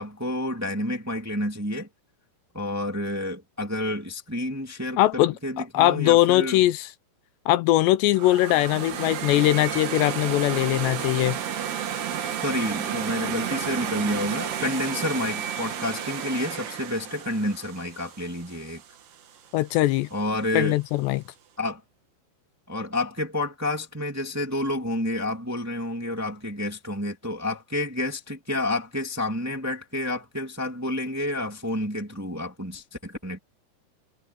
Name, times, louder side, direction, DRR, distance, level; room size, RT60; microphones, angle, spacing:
voice 1, 0.0-1.9 2.5-6.6 12.4-18.8 20.1-20.8 21.6-21.8 22.7-33.4, left 1 dB, 5° right, 1.8 m, -29 dB
voice 2, 5.0-6.9 7.5-11.4 19.5-20.1 20.5-21.2, left 15 dB, 80° left, 2.8 m, -21 dB
sound 1, 8.1-19.1, right 8 dB, 65° right, 4.3 m, -32 dB
omnidirectional pair, 5.2 m